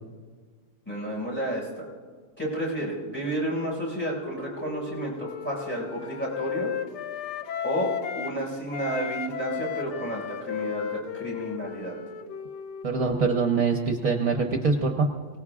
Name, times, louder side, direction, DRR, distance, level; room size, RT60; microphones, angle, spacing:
voice 1, 0.9-1.9 2.4-6.7 7.6-12.0, right 1 dB, 5° left, -6 dB, 6.1 m, -31 dB
Wind instrument woodwind instrument, 4.0-8.4 8.7-13.2, left 9 dB, 90° left, 1.4 m, -35 dB
voice 2, 12.8-15.1, right 4 dB, 60° right, 2 dB, 1.4 m, -24 dB
29.0 x 18.5 x 2.5 m, 1.5 s
omnidirectional pair, 1.7 m